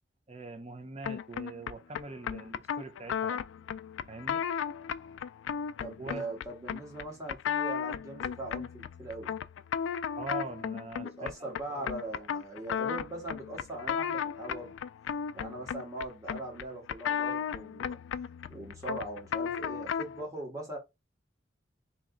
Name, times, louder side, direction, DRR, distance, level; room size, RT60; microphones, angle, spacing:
voice 1, 0.3-3.4 4.1-4.4 6.0-6.2 10.2-11.3 11.7-11.8, right 3 dB, 35° right, 0.8 m, -42 dB
sound 1, 1.0-20.2, left 7 dB, 85° left, 0.3 m, -35 dB
voice 2, 5.8-9.3 11.0-14.7 15.3-18.0 18.5-20.8, right 2 dB, 15° right, 1.7 m, -40 dB
3.1 x 2.9 x 3.8 m
head